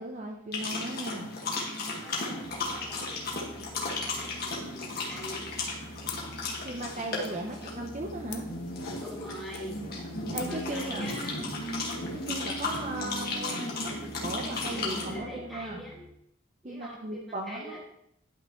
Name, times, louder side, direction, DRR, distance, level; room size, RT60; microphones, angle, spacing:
voice 1, 0.0-1.3 6.6-8.5 10.3-11.0 12.1-15.8 16.6-17.8, right 1 dB, 35° right, 1 dB, 0.7 m, -37 dB
sound 1, 0.5-15.2, left 2 dB, 50° left, 1.7 m, -35 dB
voice 2, 2.0-5.8 7.3-7.6 9.0-9.9 10.4-11.4 14.7-16.1 16.6-17.8, equal, ahead, -5 dB, 2.0 m, -44 dB
sound 2, 2.4-16.1, right 1 dB, 60° right, 1.5 m, -51 dB
sound 3, 6.0-11.4, left 10 dB, 85° left, 0.8 m, -48 dB
11.0 x 5.8 x 3.1 m, 0.78 s
head